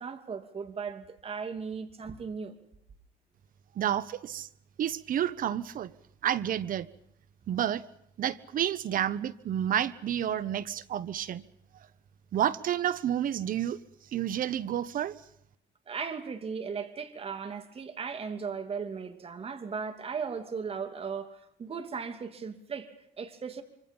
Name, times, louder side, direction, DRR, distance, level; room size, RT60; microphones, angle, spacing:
voice 1, 0.0-2.5 15.9-23.6, right 5 dB, 35° right, 2.8 m, -37 dB
voice 2, 3.8-4.5 4.8-5.9 6.2-6.9 7.5-7.8 8.2-11.4 12.3-13.8 14.1-15.1, right 10 dB, 55° right, 1.1 m, -30 dB
26.0 x 25.5 x 5.5 m
cardioid pair, 110°, 17 cm